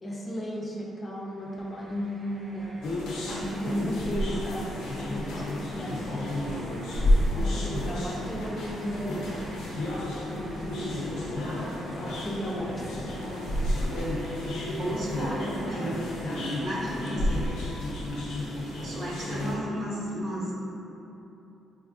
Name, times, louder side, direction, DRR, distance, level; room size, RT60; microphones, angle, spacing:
voice 1, 0.0-2.8 3.6-4.7 5.0-6.3 7.4-9.3 10.3-11.5 11.9-13.0, equal, 25° left, -3 dB, 0.5 m, -35 dB
sound 1, 1.1-19.6, right 2 dB, 35° right, 0.3 m, -48 dB
sound 2, 2.8-19.6, left 1 dB, 90° left, 0.5 m, -31 dB
sound 3, 4.2-16.4, equal, ahead, 0.8 m, -48 dB
voice 2, 7.5-8.0 14.1-14.3 14.7-17.5 18.8-20.5, right 1 dB, 60° right, -6 dB, 0.8 m, -34 dB
4.3 x 2.4 x 2.4 m, 2.9 s
cardioid pair, 90°, 0 cm